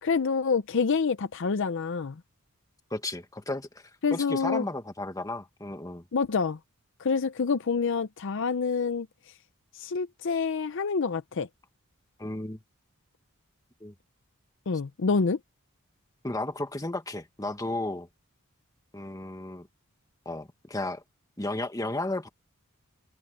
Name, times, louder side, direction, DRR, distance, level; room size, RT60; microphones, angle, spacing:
voice 1, 0.0-2.2 4.0-4.6 6.1-6.6 7.0-9.1 9.7-11.5 14.7-15.4, left 5 dB, 60° left, 0.5 m, -27 dB
voice 2, 2.9-3.8 4.1-6.0 12.2-12.6 13.8-13.9 16.2-18.1 18.9-19.7 20.2-21.0 21.4-22.3, left 2 dB, 15° left, 1.4 m, -33 dB
head